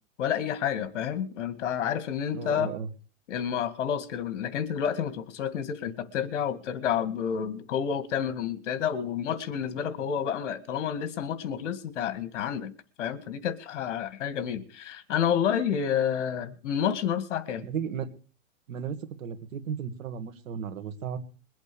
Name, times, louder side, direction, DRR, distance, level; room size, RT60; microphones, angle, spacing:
voice 1, 0.2-2.7 3.3-12.7 13.0-17.7, left 8 dB, 60° left, 2.1 m, -29 dB
voice 2, 2.3-2.9 17.6-18.1 18.7-21.2, right 7 dB, 70° right, 2.3 m, -35 dB
22.0 x 8.2 x 7.0 m
supercardioid pair, 160°, 40 cm